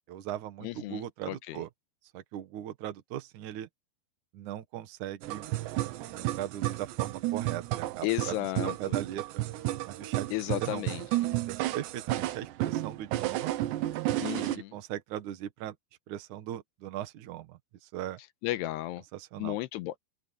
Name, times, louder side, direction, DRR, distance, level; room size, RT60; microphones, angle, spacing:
voice 1, 0.1-1.7 2.1-3.7 4.3-5.5 6.1-8.4 8.6-9.4 9.9-10.3 10.6-10.8 11.2-13.5 14.4-15.8 16.1-18.2 19.1-19.6, right 12 dB, 55° right, 2.5 m, -39 dB
voice 2, 0.6-1.6 8.0-9.0 10.3-11.0 14.2-14.8 18.4-19.0 19.4-20.0, left 16 dB, 85° left, 2.8 m, -34 dB
sound 1, 5.2-14.6, right 15 dB, 80° right, 3.3 m, -32 dB
open air
omnidirectional pair, 5.0 m